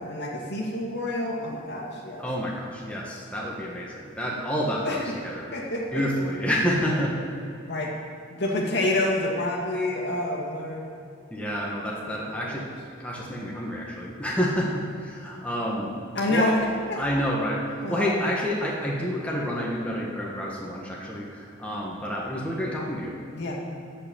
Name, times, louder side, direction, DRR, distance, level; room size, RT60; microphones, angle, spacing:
voice 1, 0.0-2.2 4.8-5.1 5.5-6.0 7.7-7.9 8.3-10.9 12.0-12.6 16.1-17.0 17.8-18.2 23.3-23.6, left 1 dB, 55° left, -2 dB, 2.2 m, -28 dB
voice 2, 2.2-5.0 5.2-5.5 5.9-7.1 11.3-12.6 13.0-16.0 16.3-16.5 17.0-23.1, equal, 5° left, -4 dB, 1.5 m, -29 dB
14.5 x 5.9 x 8.7 m, 2.6 s
head